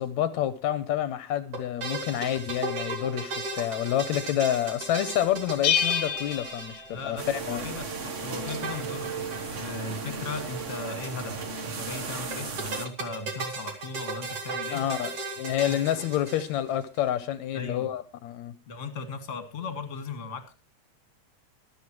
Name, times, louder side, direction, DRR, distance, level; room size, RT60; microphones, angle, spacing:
voice 1, 0.0-7.6 14.7-18.5, left 11 dB, 80° left, 2.1 m, -28 dB
sound 1, 1.5-7.3 8.6-9.5 9.7-9.8 10.0-10.1 12.3-16.8, right 3 dB, 50° right, 3.2 m, -36 dB
Bell, 5.6-7.5, left 8 dB, 55° left, 1.1 m, -28 dB
voice 2, 6.9-7.9 8.2-14.8 15.7-16.0 17.5-17.9 18.7-20.5, left 4 dB, 30° left, 2.0 m, -37 dB
sound 2, 7.2-12.9, right 4 dB, 80° right, 0.6 m, -35 dB
24.0 x 8.0 x 3.1 m
omnidirectional pair, 3.3 m